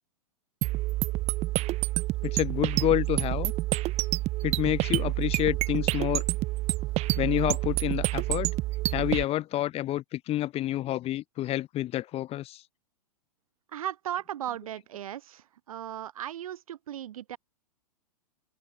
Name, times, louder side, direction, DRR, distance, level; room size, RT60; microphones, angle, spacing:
sound 1, 0.6-9.2, right 19 dB, 35° right, 1.4 m, -28 dB
voice 1, 2.2-3.5 4.4-6.2 7.1-8.5 8.9-12.6, left 14 dB, 30° left, 3.8 m, -28 dB
voice 2, 13.7-17.4, right 11 dB, 65° right, 7.4 m, -36 dB
open air
figure-of-eight pair, 105°, 20 cm